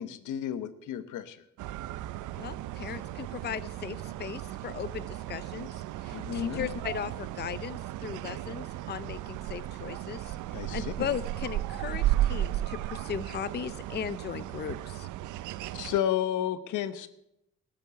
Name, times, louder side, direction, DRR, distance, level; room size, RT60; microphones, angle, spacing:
voice 1, 0.0-1.4 6.1-6.7 10.5-11.1 15.7-17.1, left 10 dB, 80° left, 13 dB, 1.0 m, -32 dB
sound 1, 1.6-16.0, right 14 dB, 85° right, 0.6 m, -35 dB
voice 2, 2.4-15.1, left 8 dB, 35° left, 15 dB, 0.6 m, -37 dB
14.0 x 7.7 x 8.3 m, 0.82 s
cardioid pair, 90°, 30 cm